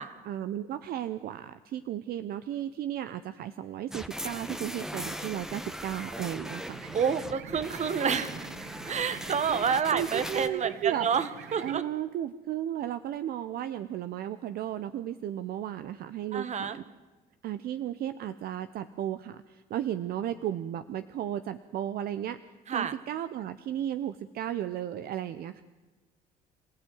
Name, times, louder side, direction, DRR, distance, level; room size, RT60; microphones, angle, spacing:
voice 1, 0.3-6.8 9.5-11.1 11.6-16.8 17.4-22.4 22.7-25.6, right 11 dB, 65° right, 12 dB, 0.9 m, -34 dB
sound 1, 3.9-10.5, equal, 5° right, 1.2 m, -39 dB
sound 2, 6.7-11.8, right 8 dB, 80° right, 1.8 m, -46 dB
voice 2, 6.9-8.3 8.9-11.8 16.3-16.8 22.7-22.9, right 7 dB, 45° right, 13 dB, 1.7 m, -29 dB
27.0 x 15.5 x 9.5 m, 1.2 s
cardioid pair, 110°, 17 cm